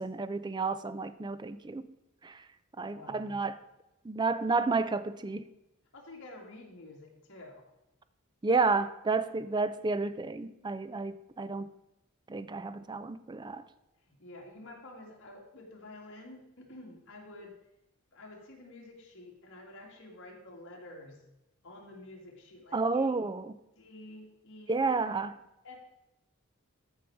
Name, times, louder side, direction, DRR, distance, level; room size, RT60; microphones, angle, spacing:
voice 1, 0.0-1.9 2.2-2.4 2.8-3.6 4.0-5.5 8.4-11.7 12.3-13.6 22.7-23.5 24.7-25.4, right 3 dB, 20° right, 0.4 m, -31 dB
voice 2, 2.8-3.4 5.9-7.7 14.0-17.6 18.1-21.2 21.6-23.1 23.8-25.2 25.6-25.8, left 2 dB, 55° left, 2.4 m, -50 dB
13.5 x 5.6 x 4.8 m
head